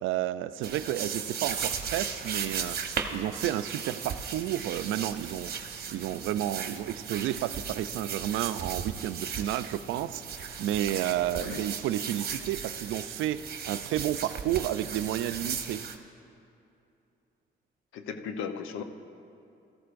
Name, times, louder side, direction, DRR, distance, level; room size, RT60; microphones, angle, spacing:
voice 1, 0.0-2.8 3.1-5.5 5.9-15.8, right 12 dB, 85° right, 13 dB, 0.4 m, -31 dB
sound 1, 0.6-16.0, right 6 dB, 50° right, 1.0 m, -36 dB
voice 2, 11.3-11.7 17.9-18.8, left 6 dB, 85° left, 8 dB, 0.7 m, -37 dB
17.0 x 14.0 x 2.5 m, 2.6 s
cardioid pair, 90°, 20 cm